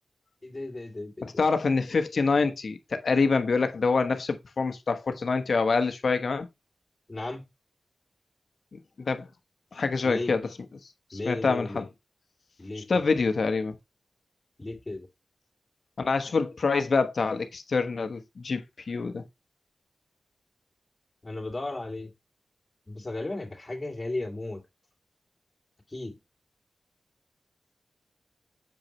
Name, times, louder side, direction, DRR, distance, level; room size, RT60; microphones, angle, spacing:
voice 1, 0.4-1.3 7.1-7.5 10.0-10.3 11.1-11.8 12.6-12.9 14.6-15.1 21.2-22.1 22.9-24.6 25.9-26.2, left 2 dB, 25° left, 2.8 m, -35 dB
voice 2, 1.2-6.5 8.7-9.3 9.7-10.5 11.1-11.9 12.7-13.8 16.0-19.2, left 4 dB, 65° left, 1.2 m, -26 dB
7.5 x 4.9 x 3.2 m
cardioid pair, 60°, 0 cm